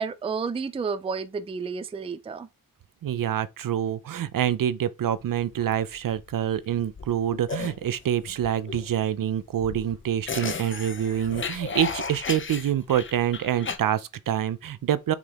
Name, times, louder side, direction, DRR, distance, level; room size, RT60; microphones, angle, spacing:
voice 1, 0.0-2.5, right 5 dB, 20° right, 0.3 m, -31 dB
voice 2, 3.0-15.1, right 10 dB, 70° right, 0.6 m, -26 dB
sound 1, 5.1-13.8, left 5 dB, 35° left, 0.7 m, -35 dB
6.0 x 3.9 x 4.2 m
wide cardioid pair, 180°, 34 cm